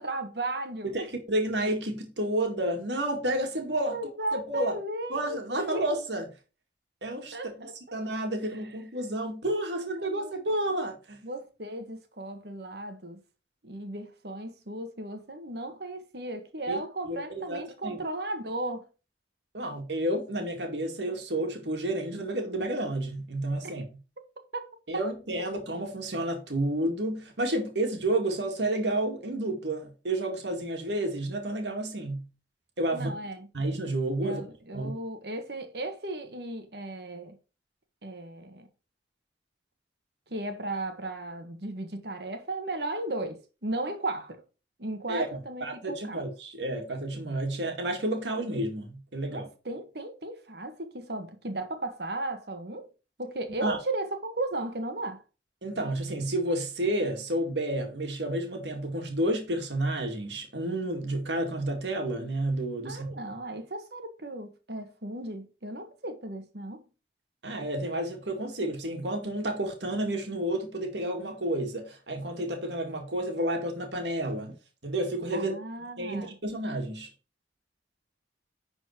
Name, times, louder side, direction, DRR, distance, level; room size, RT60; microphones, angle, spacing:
voice 1, 0.0-1.1 3.9-5.8 7.3-7.7 8.4-8.6 9.8-10.3 11.2-13.2 13.6-18.9 23.6-23.7 24.5-24.7 32.9-33.5 34.2-37.4 38.0-38.7 40.3-44.4 44.8-46.2 49.3-52.9 53.2-55.2 62.8-66.8 75.3-76.3, right 2 dB, 65° right, 1.6 m, -36 dB
voice 2, 0.8-4.0 4.3-4.8 5.1-6.3 7.0-11.2 16.7-16.8 17.1-18.0 19.5-23.8 24.9-32.2 32.8-33.1 33.5-34.4 34.7-34.9 45.1-45.3 45.6-49.5 53.6-53.8 55.6-63.2 67.4-74.5 74.8-75.5 76.0-77.1, right 1 dB, 80° right, 2.2 m, -30 dB
10.5 x 4.3 x 4.5 m
head